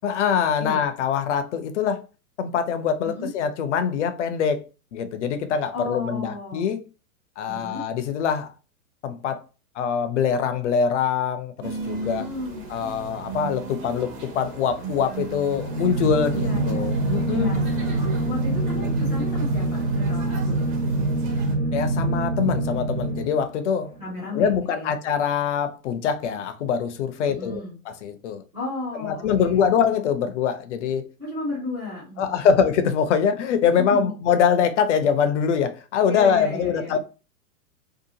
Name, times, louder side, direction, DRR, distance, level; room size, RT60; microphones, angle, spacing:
voice 1, 0.0-2.0 2.4-4.6 4.9-6.8 7.4-8.5 9.0-9.4 9.8-12.3 12.7-17.5 21.7-24.0 24.3-27.6 28.0-28.4 29.0-31.0 32.2-37.0, left 7 dB, 55° left, 0.5 m, -23 dB
voice 2, 5.7-6.7 7.5-7.8 12.0-12.6 16.3-16.8 17.3-17.6 18.3-20.8 24.0-24.9 27.2-27.8 28.5-29.7 31.2-32.5 33.7-34.1 36.1-37.0, left 3 dB, 5° right, 0.3 m, -34 dB
sound 1, 11.6-21.6, right 3 dB, 25° right, 0.8 m, -36 dB
sound 2, 15.4-23.8, right 2 dB, 90° right, 0.9 m, -25 dB
2.8 x 2.3 x 2.7 m
hypercardioid pair, 120°, 45 cm